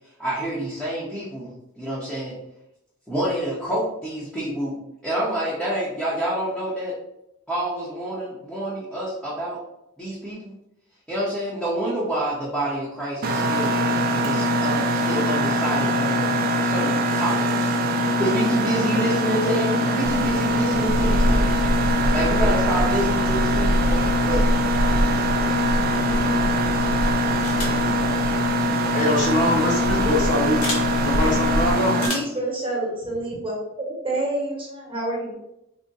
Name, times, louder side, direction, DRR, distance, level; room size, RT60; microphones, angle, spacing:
voice 1, 0.2-2.4 3.1-4.8 5.0-6.9 7.5-9.6 10.0-10.5 11.1-13.7 14.2-16.3 16.6-17.7 18.2-21.6 22.1-24.5 25.9-26.5 27.6-27.9, right 1 dB, ahead, -9 dB, 0.8 m, -28 dB
Mechanisms, 13.2-32.1, equal, 45° right, 0.4 m, -22 dB
sound 1, 20.1-31.7, equal, 85° right, 0.7 m, -26 dB
sound 2, 27.4-27.9 29.2-29.3 30.6-30.9 32.0-32.4, left 1 dB, 90° left, 1.1 m, -30 dB
voice 2, 28.9-32.0, left 1 dB, 40° left, -3 dB, 1.1 m, -23 dB
voice 3, 32.1-33.5 34.0-35.3, right 2 dB, 25° right, -4 dB, 1.1 m, -28 dB
3.6 x 2.1 x 4.0 m, 0.84 s
head